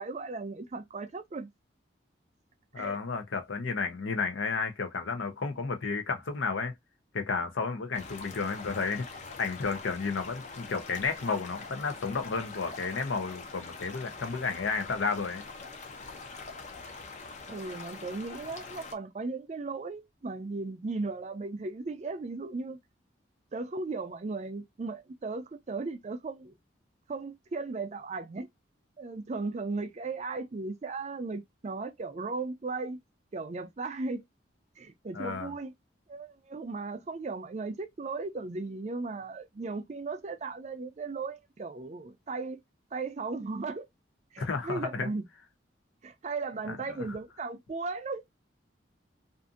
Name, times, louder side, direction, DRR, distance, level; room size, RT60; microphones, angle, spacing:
voice 1, 0.0-1.5 2.8-3.0 17.5-22.8 23.5-26.6 27.1-28.5 29.0-33.0 33.3-34.2 34.8-35.7 36.1-42.6 42.9-43.9 44.3-45.2 46.0-48.2, right 3 dB, 35° right, 0.4 m, -36 dB
voice 2, 2.7-6.7 7.1-9.1 9.4-15.4 35.1-35.5 44.4-45.1 46.7-46.8, left 4 dB, 85° left, 0.6 m, -32 dB
sound 1, 7.9-18.9, left 4 dB, 40° left, 0.4 m, -44 dB
2.5 x 2.5 x 2.4 m
head